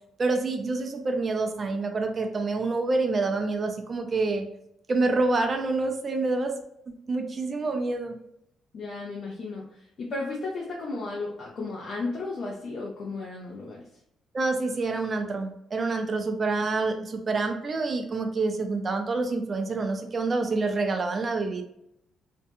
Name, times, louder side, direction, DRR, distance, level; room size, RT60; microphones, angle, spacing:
voice 1, 0.2-4.4 4.9-6.6 6.9-8.2 14.3-21.6, right 3 dB, 40° right, 4 dB, 0.4 m, -27 dB
voice 2, 8.7-13.8, left 3 dB, 60° left, -3 dB, 0.5 m, -34 dB
2.6 x 2.2 x 2.7 m, 0.76 s
cardioid pair, 90°, 0 cm